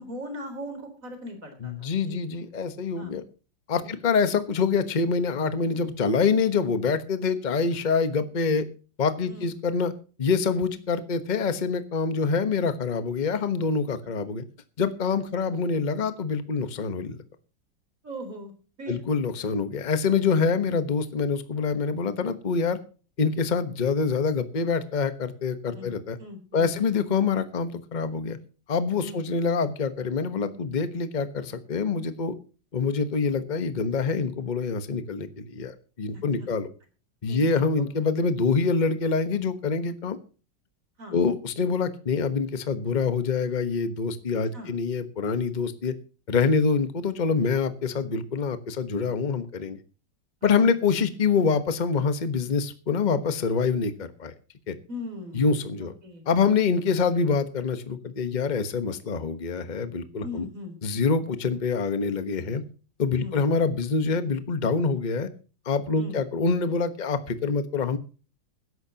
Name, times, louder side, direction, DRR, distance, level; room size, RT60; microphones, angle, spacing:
voice 1, 0.0-2.3 3.0-3.1 3.8-4.0 9.2-9.5 15.3-15.5 18.0-18.5 18.8-19.0 25.7-25.9 26.2-26.9 29.0-29.3 36.1-36.5 37.3-37.7 41.0-41.2 44.5-44.7 50.4-50.8 54.9-56.2 60.2-60.7 63.2-63.4 65.9-66.2, left 1 dB, 45° right, 5 dB, 4.3 m, -40 dB
voice 2, 1.6-3.2 3.7-8.6 9.0-9.9 10.2-14.4 14.8-17.2 18.9-22.8 23.2-26.2 26.5-28.4 28.7-32.3 32.7-36.7 37.2-40.2 41.1-45.9 46.3-49.8 50.4-54.3 54.7-54.8 55.3-55.9 56.3-60.4 60.8-62.6 63.0-65.3 65.6-68.0, left 5 dB, 30° left, 10 dB, 1.1 m, -25 dB
20.5 x 11.0 x 2.9 m, 0.35 s
omnidirectional pair, 2.0 m